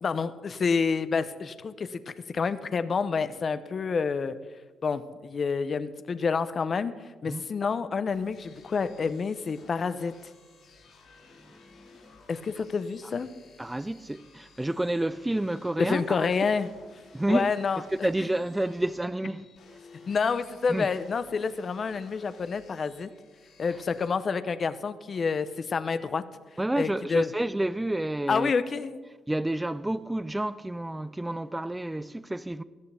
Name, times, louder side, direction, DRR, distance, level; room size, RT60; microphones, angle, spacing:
voice 1, 0.0-4.3 4.8-6.9 7.2-10.1 12.3-13.3 15.8-16.7 17.3-17.8 20.1-23.1 23.6-26.2 26.8-27.3 28.3-29.0, left 5 dB, 45° left, 0.8 m, -28 dB
sound 1, 8.1-24.1, left 4 dB, 70° left, 4.7 m, -55 dB
voice 2, 13.6-16.3 17.1-17.5 17.8-19.5 20.7-20.9 26.6-28.5 29.3-32.6, right 1 dB, 10° right, 0.5 m, -29 dB
17.5 x 13.5 x 3.5 m
cardioid pair, 90°, 0 cm